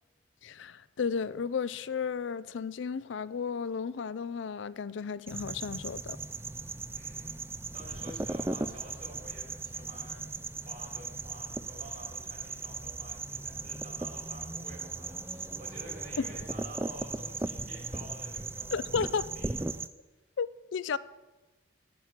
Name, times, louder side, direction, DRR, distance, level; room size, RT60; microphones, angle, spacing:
voice 1, 0.4-6.2 18.7-19.3 20.4-21.0, left 6 dB, 75° left, 0.4 m, -33 dB
Night noises crickets, 5.3-19.9, right 3 dB, 10° right, 0.3 m, -37 dB
voice 2, 6.9-19.5, right 1 dB, 45° right, 3.5 m, -50 dB
9.7 x 9.4 x 7.4 m
head